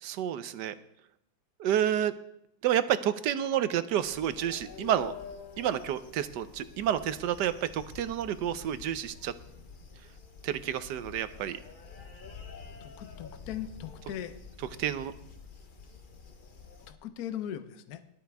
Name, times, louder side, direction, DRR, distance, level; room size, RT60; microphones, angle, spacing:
voice 1, 0.0-0.7 1.6-2.1 2.6-5.1 5.6-9.3 10.4-11.6 14.8-15.1, right 10 dB, 70° right, 13 dB, 1.2 m, -29 dB
sound 1, 4.0-16.9, left 5 dB, 35° left, 0.9 m, -48 dB
voice 2, 12.8-14.4 16.9-18.0, left 10 dB, 60° left, 9 dB, 1.2 m, -39 dB
18.5 x 12.5 x 3.5 m, 0.75 s
omnidirectional pair, 2.1 m